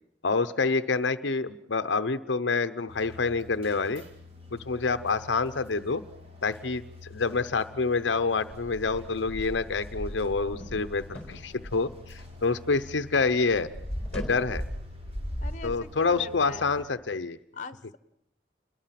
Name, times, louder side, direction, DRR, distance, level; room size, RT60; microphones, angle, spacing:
voice 1, 0.2-4.0 4.5-6.0 6.4-13.7 14.1-14.6 15.6-17.4, left 4 dB, 80° left, 11 dB, 0.8 m, -27 dB
sound 1, 2.9-16.9, left 3 dB, 35° right, 4.6 m, -48 dB
sound 2, 8.5-12.9 13.2-15.7, equal, 5° left, 4.3 m, -37 dB
voice 2, 15.4-16.7 17.5-18.0, left 3 dB, 40° left, 12 dB, 1.2 m, -42 dB
29.0 x 22.0 x 5.9 m, 0.76 s
head